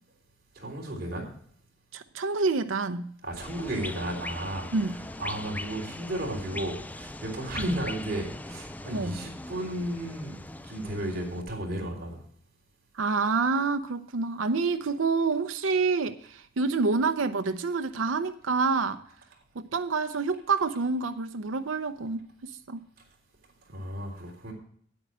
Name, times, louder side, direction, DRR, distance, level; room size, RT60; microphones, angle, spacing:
voice 1, 0.6-1.3 3.2-4.7 5.2-10.4 10.6-12.2 23.7-24.5, right 1 dB, 50° right, 3.4 m, -34 dB
voice 2, 1.9-3.0 4.7-5.0 7.6-7.8 8.9-9.2 12.9-19.0 19.6-22.8, right 4 dB, 85° right, 0.6 m, -28 dB
sound 1, 3.4-11.4, left 2 dB, 10° left, 0.3 m, -40 dB
9.2 x 8.8 x 6.1 m
head